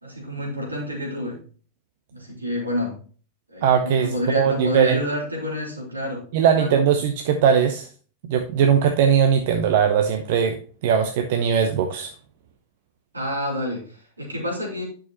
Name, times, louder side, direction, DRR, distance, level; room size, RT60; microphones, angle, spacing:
voice 1, 0.0-1.4 2.1-3.0 3.5-6.2 6.5-6.8 13.1-14.8, left 1 dB, 80° right, -3 dB, 3.7 m, -28 dB
voice 2, 3.6-5.0 6.3-7.9 8.2-10.6 10.8-12.1, right 7 dB, 50° right, 6 dB, 0.8 m, -20 dB
11.0 x 6.4 x 2.9 m, 0.41 s
figure-of-eight pair, 90°, 0 cm